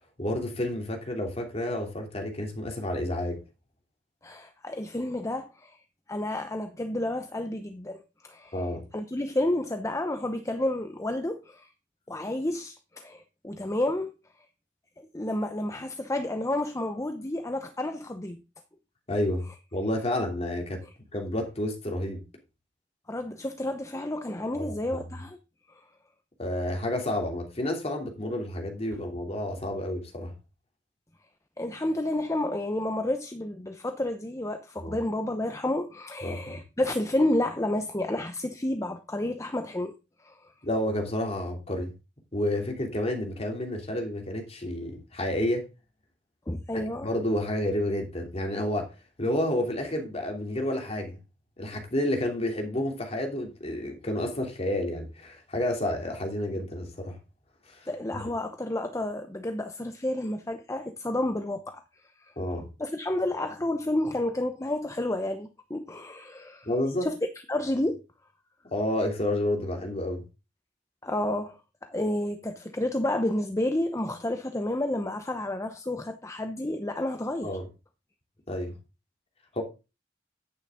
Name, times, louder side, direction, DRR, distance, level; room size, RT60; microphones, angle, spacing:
voice 1, 0.2-3.4 8.5-8.8 19.1-19.4 19.7-20.8 21.1-22.2 24.5-25.0 26.4-30.3 34.8-34.9 36.2-36.6 40.6-41.9 42.3-45.6 46.7-48.9 49.2-51.2 51.6-57.2 57.8-58.2 62.4-62.7 66.7-67.1 68.7-70.2 77.4-77.6 78.5-78.7 79.5-79.6, left 1 dB, 35° left, 2.9 m, -30 dB
voice 2, 4.2-5.8 6.1-11.7 12.1-14.1 15.0-18.4 20.8-20.9 23.1-25.4 25.7-25.8 31.6-40.5 46.5-47.1 57.9-61.8 62.2-62.3 62.8-66.7 67.0-67.1 67.5-68.0 71.0-77.6, left 1 dB, 15° left, 0.8 m, -30 dB
10.5 x 8.9 x 3.7 m
head